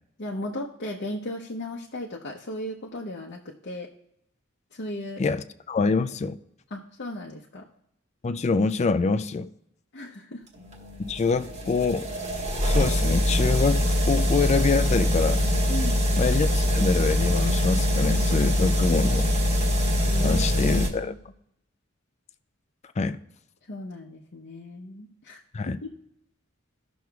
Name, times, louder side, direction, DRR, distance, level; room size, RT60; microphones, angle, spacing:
voice 1, 0.2-3.9 4.7-5.2 6.7-7.7 9.9-10.4 15.7-16.0 20.1-20.4 21.1-21.2 23.7-25.4 25.7-25.9, left 1 dB, 55° left, 0.7 m, -36 dB
voice 2, 5.2-6.4 8.2-9.5 11.0-12.1 12.6-15.4 16.2-19.3 20.2-21.1 23.0-23.2 25.5-25.8, left 4 dB, 35° left, 0.4 m, -25 dB
sound 1, 10.6-20.9, left 1 dB, 35° right, 1.4 m, -23 dB
16.5 x 6.1 x 2.3 m
head